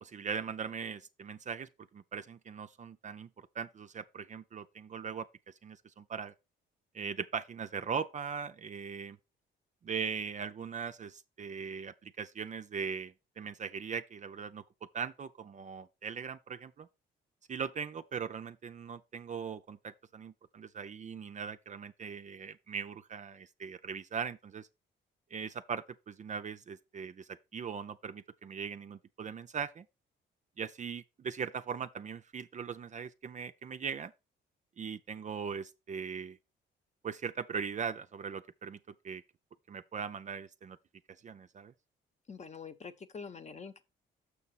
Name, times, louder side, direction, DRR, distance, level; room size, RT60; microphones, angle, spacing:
voice 1, 0.0-6.3 6.9-9.2 9.8-14.6 14.9-16.9 17.5-24.7 25.3-29.8 30.6-34.1 34.8-36.4 37.0-38.8 39.0-39.2 39.7-40.8 41.2-41.7, right 6 dB, 40° right, 0.5 m, -40 dB
voice 2, 42.3-43.8, left 5 dB, 35° left, 0.9 m, -45 dB
6.8 x 5.5 x 4.1 m
cardioid pair, 90°, 20 cm